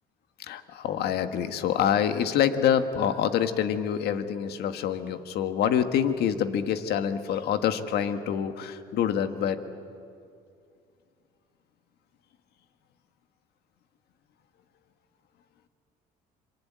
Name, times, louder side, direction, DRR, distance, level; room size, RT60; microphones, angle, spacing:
voice 1, 0.4-9.6, left 9 dB, 75° left, 9 dB, 1.6 m, -26 dB
26.5 x 23.5 x 9.5 m, 2.4 s
cardioid pair, 110°, 17 cm